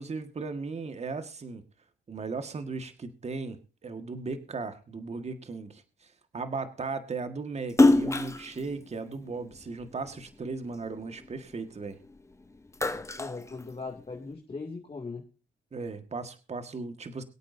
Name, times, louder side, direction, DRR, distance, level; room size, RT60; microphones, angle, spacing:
voice 1, 0.0-1.6 2.1-12.0 15.7-17.2, right 4 dB, 35° right, 8 dB, 1.7 m, -37 dB
Splash splatter, 7.7-10.2 10.7-12.2 12.5-14.2, left 2 dB, 15° left, 1.1 m, -26 dB
voice 2, 12.9-15.2, left 4 dB, 30° left, 1 dB, 2.5 m, -39 dB
23.5 x 8.4 x 2.7 m, 0.33 s
cardioid pair, 90°, 20 cm